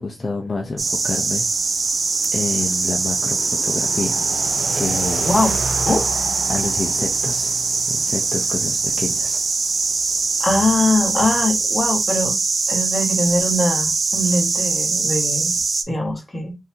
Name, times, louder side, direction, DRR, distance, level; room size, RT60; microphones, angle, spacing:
voice 1, 0.0-1.5 2.3-4.2 4.8-5.3 6.5-7.6 7.9-9.4, left 3 dB, 35° left, 0.6 m, -28 dB
sound 1, 0.8-15.8, right 4 dB, 40° right, 0.5 m, -22 dB
voice 2, 5.2-5.6 5.9-6.1 10.4-12.4 12.7-15.5 15.9-16.5, left 1 dB, 15° left, 1.1 m, -21 dB
3.9 x 2.7 x 2.7 m
wide cardioid pair, 170°, 0 cm